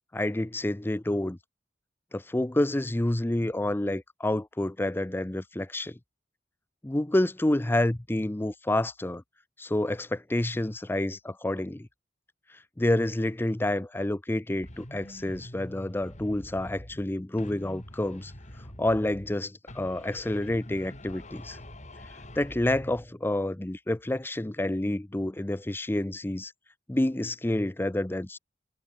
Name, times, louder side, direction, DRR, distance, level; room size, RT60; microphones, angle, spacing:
voice 1, 0.1-1.4 2.1-6.0 6.8-9.2 9.6-11.9 12.8-18.3 18.8-21.6 22.4-26.5 26.9-28.4, left 1 dB, 10° left, 0.5 m, -28 dB
sound 1, 14.6-17.1 17.4-19.4 19.7-23.1, left 1 dB, 40° left, 5.1 m, -45 dB
head